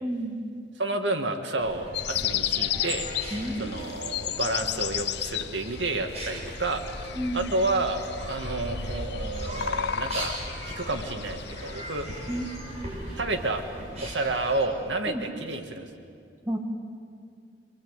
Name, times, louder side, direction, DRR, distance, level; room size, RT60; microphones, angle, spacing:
voice 1, 0.0-0.4 3.3-3.7 7.1-7.5 12.3-12.5 15.1-15.2 16.5-16.6, right 1 dB, 15° right, 2 dB, 2.1 m, -30 dB
voice 2, 0.8-3.1 3.6-6.9 7.3-10.4 10.7-12.1 13.2-13.6 14.0-15.9, right 2 dB, 80° right, 5 dB, 1.9 m, -30 dB
sound 1, 1.6-14.6, equal, 35° right, 6.9 m, -39 dB
sound 2, 1.9-12.6, left 10 dB, 65° left, 0.6 m, -34 dB
25.5 x 23.5 x 8.1 m, 2.3 s
head